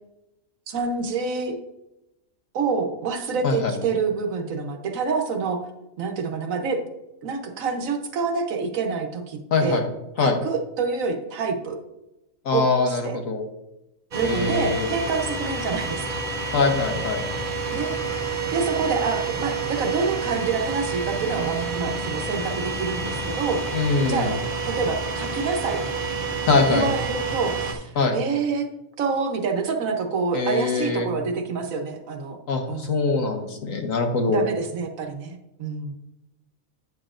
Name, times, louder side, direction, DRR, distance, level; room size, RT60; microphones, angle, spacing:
voice 1, 0.7-1.6 2.5-5.6 6.0-6.8 7.2-9.8 10.2-11.8 12.5-13.2 14.1-16.2 17.7-17.9 18.5-23.7 24.1-24.3 24.6-25.8 26.7-28.7 29.0-32.4 32.7-32.9 34.3-35.9, right 4 dB, 80° right, 4 dB, 1.4 m, -27 dB
voice 2, 9.5-9.8 10.2-10.4 12.4-13.4 14.2-14.8 16.5-17.2 23.7-24.4 26.5-26.9 27.9-28.2 30.3-31.1 32.5-34.4, left 4 dB, 75° left, 3 dB, 1.5 m, -23 dB
sound 1, 14.1-27.7, right 4 dB, 40° right, 0.9 m, -29 dB
9.1 x 7.0 x 2.5 m, 0.92 s
omnidirectional pair, 1.4 m